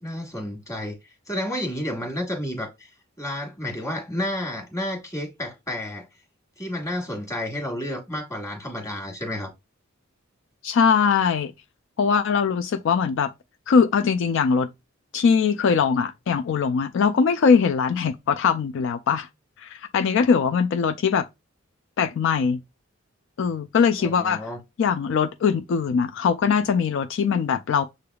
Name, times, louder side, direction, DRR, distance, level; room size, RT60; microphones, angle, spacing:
voice 1, 0.0-2.9 3.2-6.1 6.6-9.5 24.0-24.6, left 1 dB, 15° left, 1.4 m, -31 dB
voice 2, 10.6-11.5 12.0-13.3 13.7-14.7 15.1-19.3 19.6-21.3 22.0-22.6 23.4-24.4 24.8-27.9, left 6 dB, 65° left, 0.3 m, -21 dB
6.6 x 3.4 x 2.3 m
head